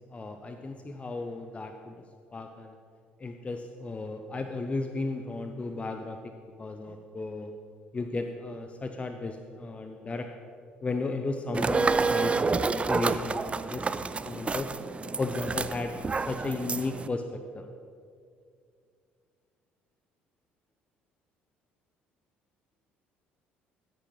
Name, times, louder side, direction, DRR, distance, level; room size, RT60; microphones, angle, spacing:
voice 1, 0.1-1.9 2.3-2.7 3.2-6.2 6.6-7.5 7.9-10.3 10.8-13.8 14.2-14.7 15.2-16.0 16.3-17.7, left 3 dB, 25° left, 6 dB, 0.6 m, -34 dB
sound 1, 11.5-17.1, right 4 dB, 20° right, 0.4 m, -29 dB
15.5 x 9.5 x 3.2 m, 2.3 s
figure-of-eight pair, 55°, 5 cm